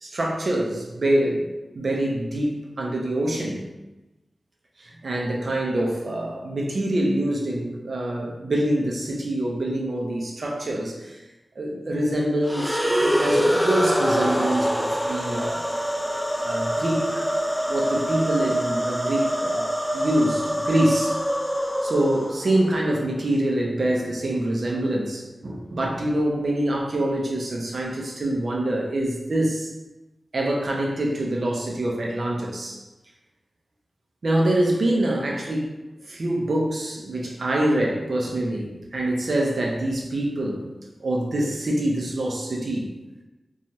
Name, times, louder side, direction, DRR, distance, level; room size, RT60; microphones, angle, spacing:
voice 1, 0.0-1.5 1.7-3.7 4.8-11.2 11.6-12.8 13.1-15.7 16.4-17.3 17.7-21.2 21.8-29.7 30.3-32.8 34.2-35.8 36.1-40.7 41.0-42.9, right 1 dB, 65° right, -1 dB, 0.5 m, -25 dB
sound 1, 12.4-22.7, equal, ahead, 0.3 m, -24 dB
2.7 x 2.3 x 2.9 m, 1.0 s
wide cardioid pair, 65°, 0 cm